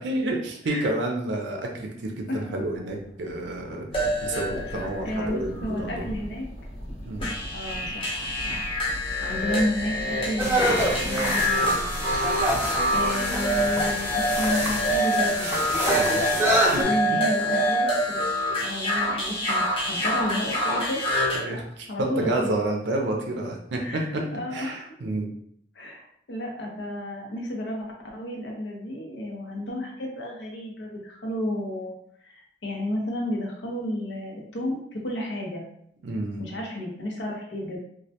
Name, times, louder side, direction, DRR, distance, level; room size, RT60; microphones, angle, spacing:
voice 1, 0.0-6.1 7.1-7.3 15.9-16.8 21.3-24.0 24.5-25.3 36.0-36.4, right 1 dB, 75° right, 1 dB, 0.4 m, -30 dB
sound 1, 2.4-2.5 3.9-5.3 7.2-21.4, equal, 30° left, 0.7 m, -26 dB
sound 2, 3.9-15.0, equal, 60° left, 0.9 m, -39 dB
voice 2, 5.0-6.5 7.5-8.6 9.2-11.9 12.4-15.6 16.7-18.2 18.6-21.2 21.5-21.6 21.9-22.5 23.8-24.9 25.8-26.0 26.3-31.9 32.2-35.7 36.4-37.8, left 1 dB, 85° left, -1 dB, 0.6 m, -32 dB
sound 3, 10.4-16.8, right 1 dB, 10° right, 0.5 m, -26 dB
2.2 x 2.1 x 2.7 m, 0.70 s
head